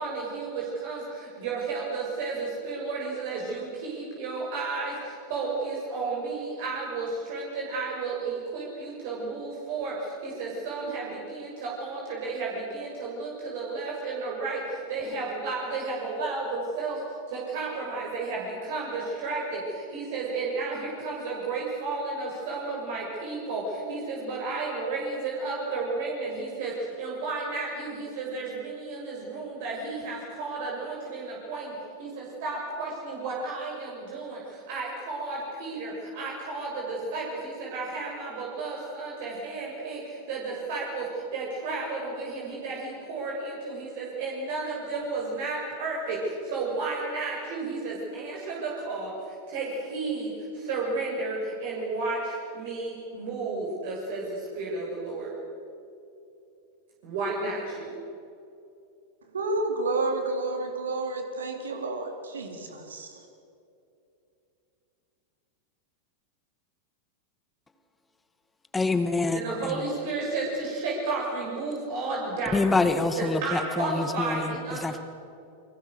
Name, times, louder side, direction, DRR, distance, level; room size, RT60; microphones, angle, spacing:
voice 1, 0.0-31.7 32.0-55.3 57.0-58.0 69.3-72.6 73.2-75.0, right 3 dB, 50° right, -2 dB, 6.2 m, -32 dB
voice 2, 59.3-63.2, right 2 dB, 70° right, 4 dB, 3.6 m, -30 dB
voice 3, 68.7-69.8 72.5-74.5 74.8-75.0, left 3 dB, 10° left, 9 dB, 2.1 m, -26 dB
29.5 x 24.0 x 6.5 m, 2.7 s
figure-of-eight pair, 90°, 0 cm